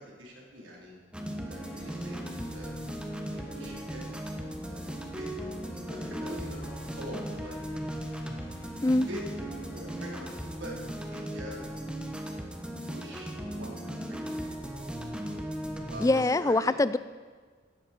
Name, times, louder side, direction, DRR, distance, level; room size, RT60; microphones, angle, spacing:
voice 1, 0.2-1.0 1.5-2.2 2.5-2.8 3.3-4.2 4.6-7.6 9.1-11.7 12.9-13.7 14.1-14.4 15.9-16.1 16.4-16.8, equal, 80° right, -2 dB, 3.8 m, -44 dB
sound 1, 1.1-16.3, equal, 5° right, 1.2 m, -37 dB
sound 2, 1.5-10.3, left 2 dB, 70° left, 1.4 m, -53 dB
voice 2, 16.0-17.0, left 2 dB, 15° left, 15 dB, 0.4 m, -24 dB
16.5 x 13.5 x 4.5 m, 1.5 s
head